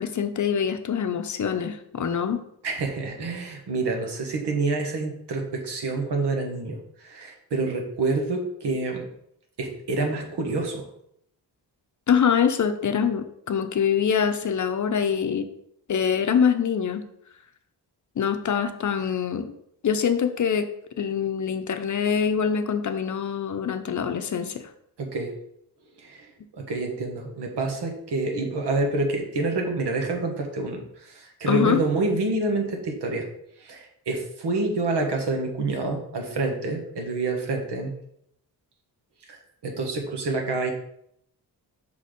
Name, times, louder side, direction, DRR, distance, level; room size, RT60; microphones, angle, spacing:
voice 1, 0.0-2.4 12.1-15.5 15.9-17.1 18.2-19.5 19.8-20.7 21.0-24.6 31.5-31.8, left 7 dB, 45° left, 8 dB, 0.7 m, -24 dB
voice 2, 2.6-9.1 9.6-10.9 25.0-25.3 26.0-26.3 26.6-33.3 33.6-37.9 39.3-40.7, right 3 dB, 80° right, 2 dB, 1.5 m, -27 dB
5.6 x 4.2 x 5.1 m, 0.74 s
cardioid pair, 100°, 40 cm